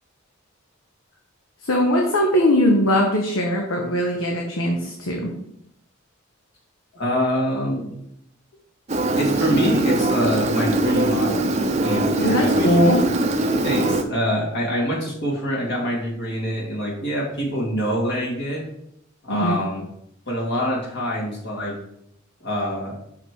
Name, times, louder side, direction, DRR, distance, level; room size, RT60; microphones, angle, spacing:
voice 1, 1.6-5.3 12.2-13.1 19.3-19.6, equal, 85° left, 0 dB, 1.1 m, -20 dB
voice 2, 6.9-7.9 9.2-12.9 13.6-18.6 19.2-19.8 20.3-21.7 22.4-22.9, equal, 60° left, -4 dB, 2.5 m, -25 dB
Engine, 8.9-14.0, right 2 dB, 35° right, 0.7 m, -21 dB
6.4 x 4.9 x 4.8 m, 0.75 s
head